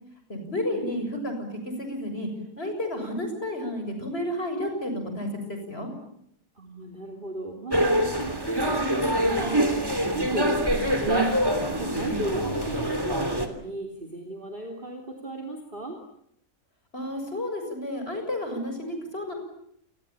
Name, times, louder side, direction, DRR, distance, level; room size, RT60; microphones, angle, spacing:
voice 1, 0.3-1.3 1.6-2.3 2.6-5.9 12.0-12.2 16.9-19.3, left 1 dB, 40° left, 5 dB, 7.4 m, -31 dB
voice 2, 6.6-16.0, right 2 dB, 30° right, 3 dB, 3.1 m, -35 dB
sound 1, 7.7-13.5, equal, 15° right, 2.9 m, -25 dB
28.5 x 21.5 x 8.8 m, 0.72 s
omnidirectional pair, 1.6 m